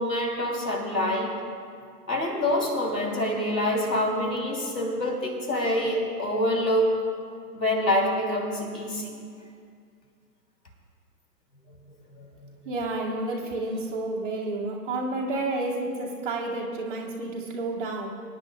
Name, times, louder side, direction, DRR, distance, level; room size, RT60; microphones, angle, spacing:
voice 1, 0.0-1.3 2.1-7.0 7.5-9.1 12.2-12.5, left 1 dB, 75° left, 1 dB, 3.1 m, -26 dB
voice 2, 12.7-18.1, right 2 dB, 45° right, -3 dB, 2.2 m, -30 dB
24.5 x 10.5 x 2.3 m, 2.2 s
figure-of-eight pair, 125°, 50 cm